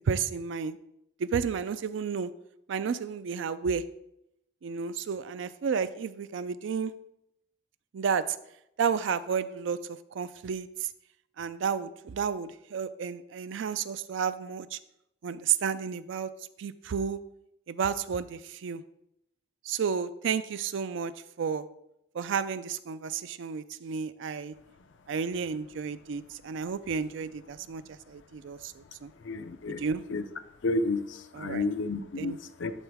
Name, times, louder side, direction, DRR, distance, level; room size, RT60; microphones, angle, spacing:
voice 1, 0.1-0.8 1.2-2.3 2.7-3.8 4.6-6.9 7.9-8.4 8.8-9.8 10.1-10.7 11.4-14.8 15.2-16.3 16.6-17.2 17.7-18.8 19.7-21.1 21.4-21.7 22.1-24.5 25.1-27.8 28.1-29.1 29.8-30.0 31.3-31.6 32.2-32.4, right 6 dB, 65° right, 14 dB, 0.4 m, -31 dB
voice 2, 29.2-29.8 30.1-30.2 30.6-32.7, left 2 dB, 65° left, 10 dB, 0.5 m, -31 dB
11.5 x 3.9 x 3.5 m, 0.81 s
head